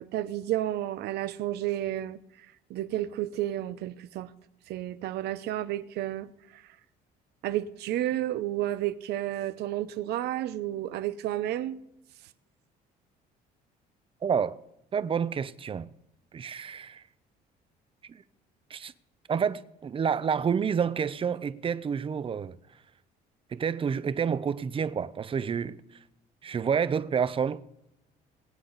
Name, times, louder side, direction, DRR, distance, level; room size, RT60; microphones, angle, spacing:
voice 1, 0.0-2.2 2.7-4.3 4.7-6.6 7.4-11.8, right 13 dB, 75° right, 0.8 m, -31 dB
voice 2, 14.2-14.6 14.9-15.9 16.3-17.0 18.1-18.2 18.7-18.9 19.3-22.6 23.5-25.8 26.4-27.6, right 7 dB, 30° right, 0.7 m, -29 dB
22.5 x 8.6 x 4.0 m
cardioid pair, 110°, 17 cm